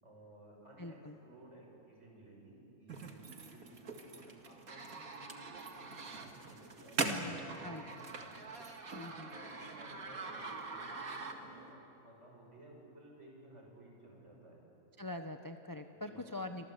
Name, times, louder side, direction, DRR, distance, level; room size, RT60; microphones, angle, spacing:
voice 1, 0.0-8.1 8.7-8.8 9.2-14.6 15.9-16.3, right 1 dB, 50° right, -1 dB, 6.7 m, -57 dB
voice 2, 0.8-1.2 7.0-7.8 8.9-9.3 15.0-16.7, left 1 dB, 15° left, 6 dB, 0.8 m, -44 dB
sound 1, 2.9-11.7, right 3 dB, 70° right, 2.4 m, -43 dB
26.5 x 26.0 x 8.2 m, 2.9 s
omnidirectional pair, 1.6 m